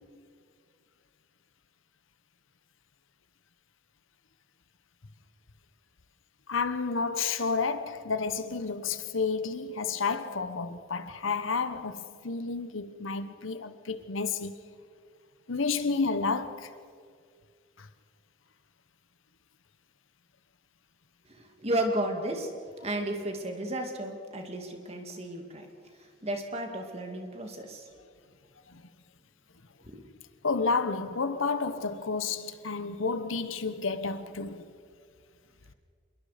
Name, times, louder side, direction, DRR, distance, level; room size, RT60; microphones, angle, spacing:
voice 1, 6.5-14.6 15.5-16.7 17.8-17.9 28.7-28.8 30.4-34.7, left 4 dB, 80° left, 1.1 m, -31 dB
voice 2, 21.3-22.5 22.8-25.7 26.2-27.9 29.8-30.0, right 1 dB, 30° right, 2.3 m, -33 dB
26.5 x 22.0 x 5.1 m
head